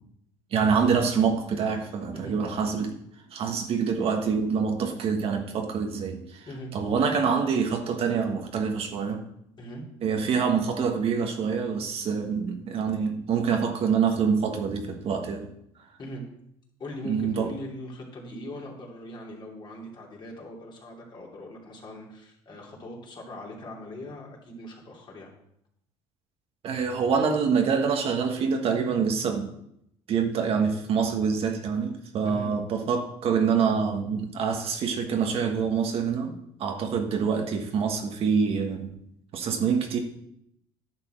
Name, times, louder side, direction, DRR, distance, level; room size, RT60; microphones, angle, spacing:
voice 1, 0.5-3.0 3.3-6.5 6.7-9.2 10.0-15.5 17.0-17.5 26.6-29.5 30.1-38.9 39.3-40.0, right 6 dB, 55° right, 4 dB, 1.4 m, -26 dB
voice 2, 16.8-25.3 32.2-32.5, left 1 dB, 40° left, -2 dB, 3.0 m, -41 dB
10.5 x 6.1 x 4.5 m, 0.74 s
supercardioid pair, 90°, 12 cm